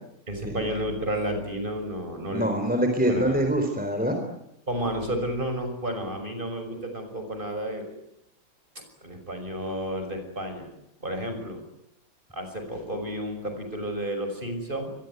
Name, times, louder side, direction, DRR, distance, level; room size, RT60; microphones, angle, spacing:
voice 1, 0.3-2.5 3.1-3.4 4.7-8.0 9.0-10.7 11.0-11.6 12.3-15.0, right 1 dB, 25° right, 6 dB, 6.3 m, -31 dB
voice 2, 2.3-4.2, equal, 5° right, 4 dB, 3.7 m, -24 dB
25.5 x 22.0 x 9.5 m, 0.79 s
omnidirectional pair, 2.0 m